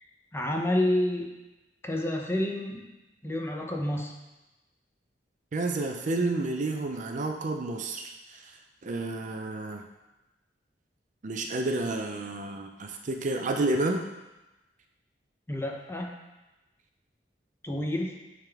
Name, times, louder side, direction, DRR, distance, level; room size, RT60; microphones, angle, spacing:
voice 1, 0.3-1.3 1.8-2.8 3.2-4.1 15.5-16.2 17.6-18.2, left 1 dB, 15° left, 1 dB, 0.7 m, -29 dB
voice 2, 5.5-8.4 8.8-9.8 11.2-14.1, right 2 dB, 45° right, 4 dB, 0.5 m, -30 dB
8.9 x 3.6 x 3.4 m, 1.0 s
head